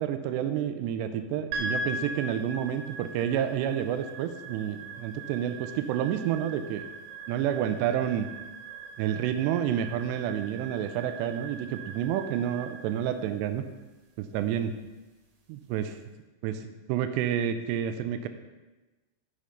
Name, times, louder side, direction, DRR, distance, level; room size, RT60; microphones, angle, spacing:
voice 1, 0.0-6.8 7.3-8.3 9.0-13.6 14.2-14.7 15.5-16.0 16.4-18.3, right 10 dB, 85° right, 9 dB, 2.8 m, -29 dB
sound 1, 1.5-15.9, right 2 dB, 60° right, 2.6 m, -41 dB
11.5 x 5.7 x 5.1 m, 1.2 s
omnidirectional pair, 4.9 m